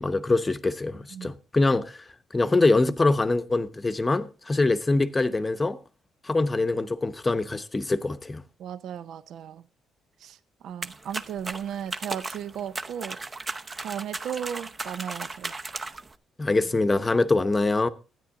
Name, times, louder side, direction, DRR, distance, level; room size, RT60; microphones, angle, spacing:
voice 1, 0.0-2.0 2.3-5.8 6.2-8.4 16.4-17.9, left 2 dB, 20° left, 0.8 m, -24 dB
voice 2, 8.6-9.7 10.2-10.4 10.6-13.2 13.8-15.5, right 9 dB, 75° right, 0.5 m, -35 dB
sound 1, 10.8-16.1, right 3 dB, 30° right, 0.7 m, -36 dB
13.0 x 9.3 x 3.6 m
cardioid pair, 90°, 0 cm